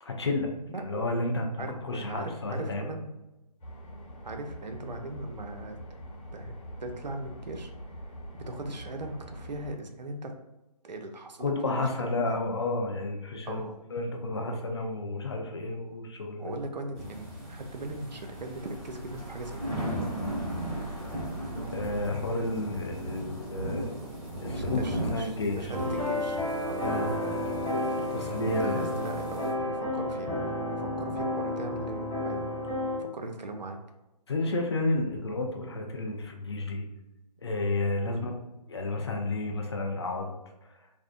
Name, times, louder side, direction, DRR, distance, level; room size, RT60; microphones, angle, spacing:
voice 1, 0.0-0.5 0.8-2.8 11.4-13.6 13.9-16.5 21.7-23.9 24.4-24.8 25.1-25.7 26.8-27.1 28.1-29.0 34.3-36.9 37.4-38.3 38.7-40.3 40.7-40.8, left 2 dB, 40° left, 2 dB, 0.4 m, -31 dB
voice 2, 0.7-1.1 1.6-3.1 4.2-6.0 6.3-6.5 6.8-7.7 8.3-10.4 10.8-12.4 13.4-13.8 16.4-19.8 24.5-26.9 28.1-32.5 33.0-33.8 38.0-38.2, right 2 dB, 85° right, 4 dB, 0.5 m, -39 dB
sound 1, 3.6-9.7, equal, 55° left, 1.2 m, -44 dB
sound 2, 17.0-29.5, right 1 dB, 15° right, 1.2 m, -37 dB
sound 3, 25.7-33.0, left 1 dB, 15° left, 0.9 m, -31 dB
2.5 x 2.0 x 2.4 m, 0.97 s
figure-of-eight pair, 150°, 21 cm